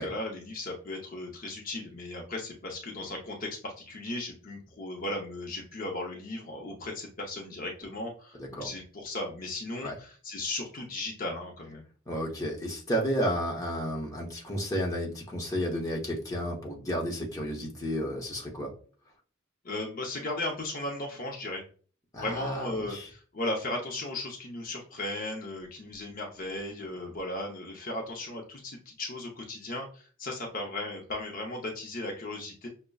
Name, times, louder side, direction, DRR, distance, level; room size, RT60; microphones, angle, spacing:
voice 1, 0.0-11.8 19.6-21.6 22.2-32.7, left 2 dB, 45° left, 0 dB, 0.7 m, -36 dB
voice 2, 12.1-18.7 22.1-23.0, equal, 20° left, -2 dB, 0.8 m, -32 dB
6.2 x 2.1 x 2.3 m, 0.41 s
head